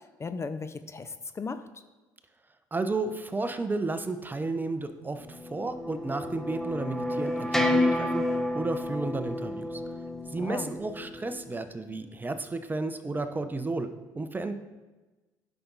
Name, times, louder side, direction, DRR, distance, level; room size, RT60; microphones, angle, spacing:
voice 1, 0.0-1.6 10.4-10.8, left 4 dB, 30° left, 10 dB, 0.6 m, -36 dB
voice 2, 2.7-8.3 8.5-9.8 10.3-13.9 14.1-14.5, right 3 dB, 20° right, 9 dB, 0.8 m, -32 dB
sound 1, 5.0-11.5, left 1 dB, 5° left, 1.0 m, -30 dB
10.5 x 6.0 x 4.1 m, 1.2 s
hypercardioid pair, 65°, 9 cm